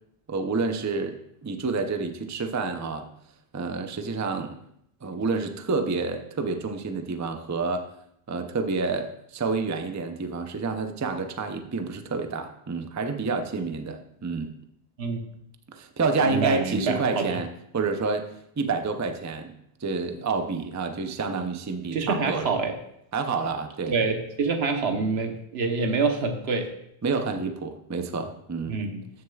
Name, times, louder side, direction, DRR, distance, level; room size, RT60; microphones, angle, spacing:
voice 1, 0.3-3.1 3.5-4.6 5.0-7.9 8.3-14.5 15.7-18.3 18.6-19.5 19.8-22.5 23.1-24.0 24.9-25.0 27.0-28.8, right 4 dB, 25° right, 7 dB, 0.4 m, -29 dB
voice 2, 16.2-17.4 21.9-22.8 23.9-26.7 28.7-29.0, right 4 dB, 85° right, 5 dB, 1.2 m, -26 dB
13.5 x 6.4 x 2.3 m, 0.74 s
omnidirectional pair, 1.0 m